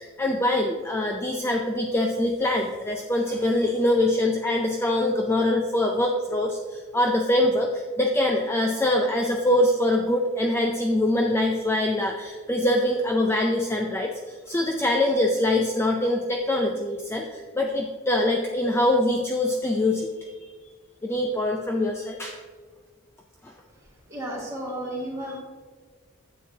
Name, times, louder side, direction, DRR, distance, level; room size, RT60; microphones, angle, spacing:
voice 1, 0.0-20.3 21.0-22.4 23.4-23.5, left 1 dB, 10° left, 1 dB, 0.4 m, -24 dB
voice 2, 24.1-25.4, right 1 dB, 15° right, -5 dB, 2.1 m, -33 dB
9.2 x 7.5 x 2.8 m, 1.5 s
head